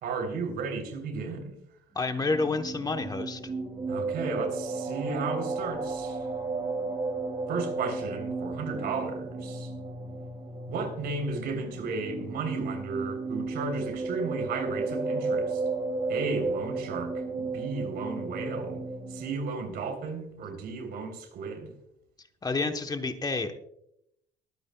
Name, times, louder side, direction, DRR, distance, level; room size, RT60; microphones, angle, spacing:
voice 1, 0.0-1.6 3.9-6.3 7.5-9.7 10.7-15.6 16.1-18.8 19.1-21.7, right 4 dB, 70° right, 3.5 m, -34 dB
voice 2, 1.9-3.4 22.4-23.5, left 3 dB, 20° left, 1.0 m, -29 dB
sound 1, 2.0-19.3, right 3 dB, 35° right, 4.0 m, -34 dB
23.5 x 9.5 x 2.3 m
cardioid pair, 110°, 17 cm